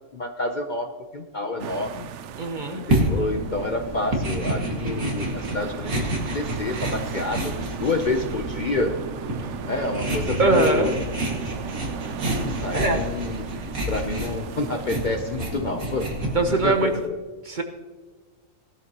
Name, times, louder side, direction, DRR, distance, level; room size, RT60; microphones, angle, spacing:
voice 1, 0.1-2.1 2.7-6.1 6.3-9.0 9.6-11.0 12.4-13.5 13.9-16.1 16.5-17.2, left 3 dB, 40° left, 5 dB, 0.8 m, -28 dB
sound 1, 1.6-17.1, right 8 dB, 65° right, 0.9 m, -39 dB
voice 2, 2.4-2.8 10.4-10.9 12.7-13.0 16.3-16.9 17.4-17.6, right 3 dB, 40° right, 5 dB, 1.0 m, -22 dB
sound 2, 2.9-16.7, right 1 dB, 90° right, 2.5 m, -29 dB
17.5 x 12.5 x 3.0 m, 1.3 s
omnidirectional pair, 1.4 m